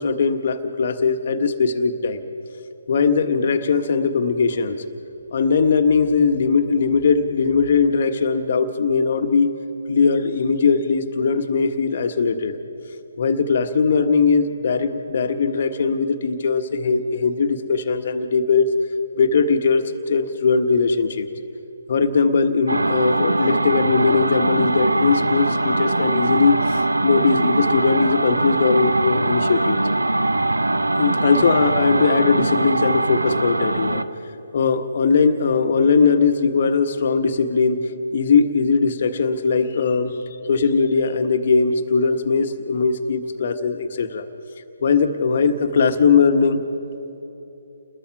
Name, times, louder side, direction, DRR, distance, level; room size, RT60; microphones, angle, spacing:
voice 1, 0.0-2.2 2.9-4.8 5.3-9.6 9.9-12.6 13.2-18.7 19.2-21.3 21.9-29.8 31.0-34.0 34.5-37.8 38.1-40.2 40.5-44.2 44.8-46.6, left 5 dB, 50° left, 7 dB, 1.4 m, -20 dB
sound 1, 22.7-34.2, right 2 dB, 85° right, 0.7 m, -21 dB
30.0 x 21.0 x 4.8 m, 3.0 s
figure-of-eight pair, 140°, 0 cm